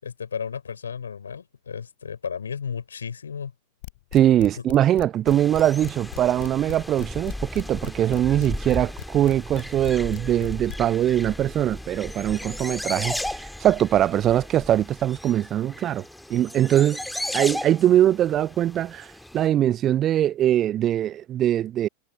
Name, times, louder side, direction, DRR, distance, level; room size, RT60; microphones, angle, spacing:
voice 1, 0.0-3.5 4.5-4.6, left 6 dB, 70° left, 4.3 m, -33 dB
sound 1, 3.8-10.8, left 20 dB, 50° left, 2.9 m, -37 dB
voice 2, 4.1-16.0 16.3-17.0 17.3-19.1 19.3-21.9, right 11 dB, 30° right, 0.4 m, -22 dB
sound 2, 5.3-19.5, left 1 dB, 5° left, 2.5 m, -35 dB
figure-of-eight pair, 90°, 0 cm